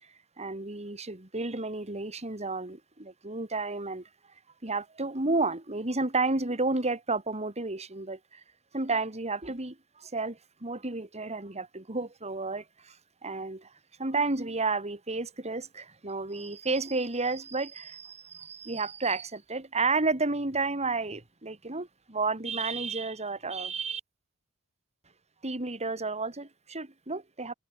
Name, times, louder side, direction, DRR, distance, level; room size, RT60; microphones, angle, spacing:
voice 1, 0.4-4.1 4.6-8.4 8.7-13.0 13.2-13.7 14.0-24.0 25.4-27.5, right 3 dB, 30° right, 2.8 m, -31 dB
head